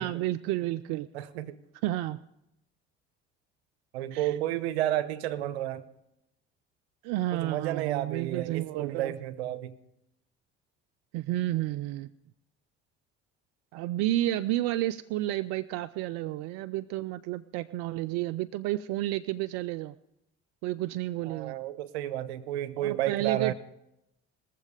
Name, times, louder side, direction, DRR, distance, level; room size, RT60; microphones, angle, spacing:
voice 1, 0.0-1.1 1.8-2.2 4.1-4.3 7.0-9.1 11.1-12.1 13.7-19.9 20.6-21.5 22.8-23.5, right 15 dB, 70° right, 13 dB, 0.5 m, -31 dB
voice 2, 1.1-1.6 3.9-5.8 7.3-9.7 21.3-23.5, right 13 dB, 85° right, 14 dB, 0.9 m, -31 dB
21.0 x 7.5 x 5.0 m, 0.84 s
hypercardioid pair, 65°, 31 cm